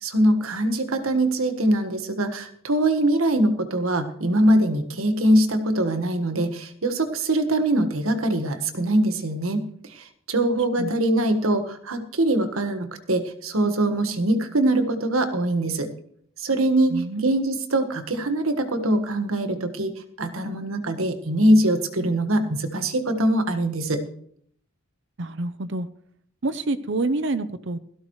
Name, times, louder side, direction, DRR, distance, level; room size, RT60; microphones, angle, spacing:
voice 1, 0.0-9.6 9.9-15.9 16.4-24.0, right 1 dB, 85° right, 7 dB, 1.6 m, -23 dB
voice 2, 16.9-17.3 25.2-25.9 26.4-27.8, right 2 dB, 60° right, 12 dB, 0.7 m, -27 dB
17.0 x 13.5 x 3.2 m, 0.63 s
head